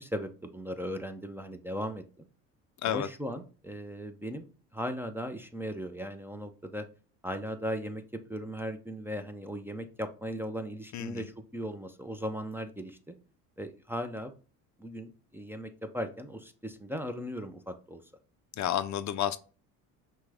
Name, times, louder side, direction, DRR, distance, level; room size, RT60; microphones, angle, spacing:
voice 1, 0.0-2.3 2.8-4.5 4.7-6.9 7.2-13.1 13.6-14.3 14.8-18.0, equal, 5° right, 4 dB, 0.5 m, -37 dB
voice 2, 10.9-11.3 18.6-19.4, left 11 dB, 50° left, 12 dB, 0.5 m, -30 dB
5.8 x 2.2 x 3.3 m, 0.37 s
supercardioid pair, 85°, 37 cm